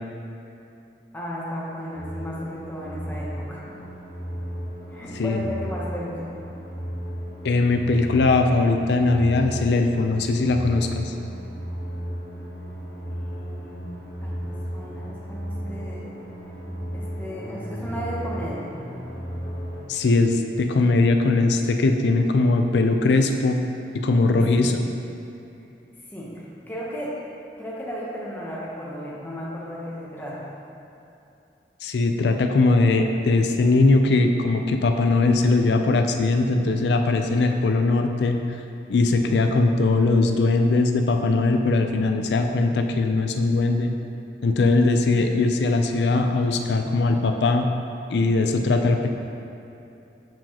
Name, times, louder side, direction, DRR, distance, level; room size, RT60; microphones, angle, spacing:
voice 1, 1.1-3.8 4.9-6.2 13.1-16.1 16.9-18.7 24.5-24.7 26.0-27.2 27.6-30.5, equal, 10° left, -6 dB, 0.8 m, -35 dB
sound 1, 1.9-19.8, equal, 55° left, 1.5 m, -34 dB
voice 2, 7.4-11.1 19.9-23.6 24.0-24.8 31.8-38.4 38.9-43.9 44.4-47.7 48.1-49.1, left 3 dB, 80° left, 5 dB, 0.4 m, -20 dB
7.5 x 4.6 x 2.9 m, 2.8 s
head